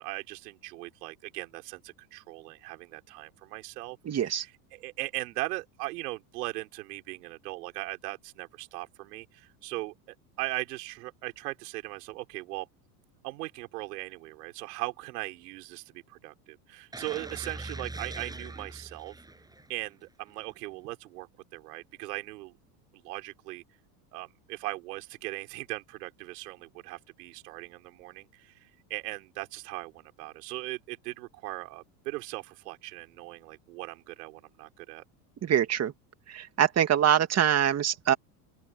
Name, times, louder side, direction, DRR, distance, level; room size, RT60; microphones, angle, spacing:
voice 1, 0.0-9.9 10.4-12.7 13.2-19.1 19.7-22.5 23.0-23.6 24.1-35.0, right 21 dB, 75° right, 5.3 m, -39 dB
voice 2, 4.1-4.4 35.4-35.9 36.3-38.1, right 9 dB, 30° right, 2.4 m, -24 dB
sound 1, 16.9-19.9 20.3-20.4, right 2 dB, 10° right, 7.9 m, -42 dB
open air
supercardioid pair, 110°, 48 cm